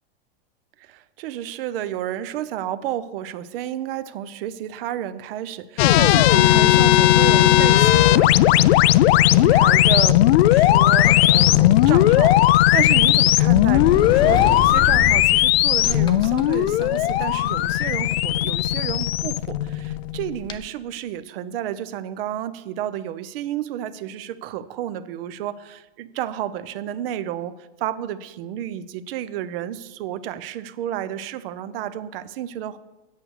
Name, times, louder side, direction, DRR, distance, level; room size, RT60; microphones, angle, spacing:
voice 1, 0.8-8.6 9.3-32.8, right 11 dB, 65° right, 14 dB, 0.7 m, -31 dB
sound 1, 5.8-20.4, left 14 dB, 75° left, 0.5 m, -16 dB
Sliding door, 10.0-20.6, left 6 dB, 15° left, 0.4 m, -32 dB
8.4 x 7.7 x 6.5 m, 1.1 s
supercardioid pair, 135°, 32 cm